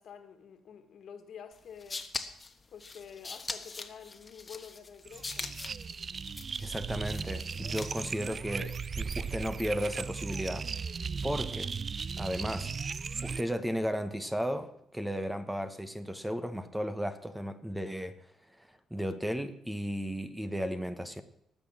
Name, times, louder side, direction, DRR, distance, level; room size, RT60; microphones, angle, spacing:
voice 1, 0.0-2.1 2.7-5.5, left 7 dB, 65° left, 1.9 m, -49 dB
sound 1, 1.6-8.2, left 4 dB, 30° left, 1.3 m, -42 dB
sound 2, 5.0-13.4, right 5 dB, 40° right, 0.4 m, -37 dB
voice 2, 6.6-10.7 11.2-11.7 12.2-12.7 13.2-18.1 18.6-21.2, equal, 5° right, 1.2 m, -34 dB
18.5 x 7.1 x 7.4 m
cardioid pair, 90°, 0 cm